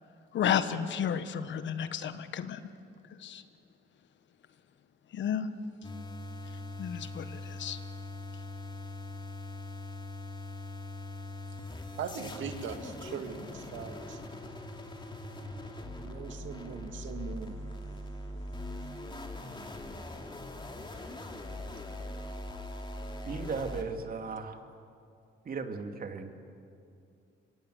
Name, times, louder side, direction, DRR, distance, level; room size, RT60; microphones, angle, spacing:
voice 1, 0.3-2.6 3.2-3.4 5.1-5.5 6.8-7.8, left 8 dB, 70° left, 11 dB, 1.4 m, -32 dB
sound 1, 5.8-23.8, left 1 dB, 25° left, 3.0 m, -41 dB
voice 2, 12.0-14.2 16.0-17.5 18.8-18.9, right 6 dB, 75° right, 6 dB, 2.3 m, -40 dB
voice 3, 23.3-24.6 25.5-26.3, right 4 dB, 45° right, 5 dB, 2.5 m, -36 dB
25.5 x 22.5 x 8.1 m, 2.5 s
cardioid pair, 90°, 20 cm